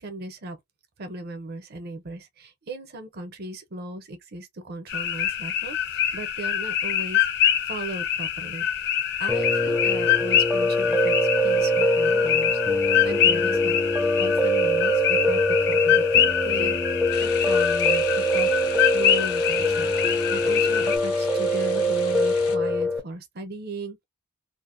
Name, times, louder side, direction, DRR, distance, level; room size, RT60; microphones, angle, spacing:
voice 1, 0.0-0.6 1.0-7.3 7.7-8.9 9.2-11.1 11.4-12.6 13.0-13.8 14.2-16.8 17.2-18.5 18.9-24.0, right 2 dB, 45° right, 0.6 m, -37 dB
sound 1, 4.9-21.0, left 10 dB, 50° left, 0.4 m, -25 dB
Piano, 9.3-23.0, equal, 10° right, 0.4 m, -23 dB
sound 2, 17.1-22.6, left 6 dB, 85° left, 0.7 m, -39 dB
2.5 x 2.1 x 2.5 m
head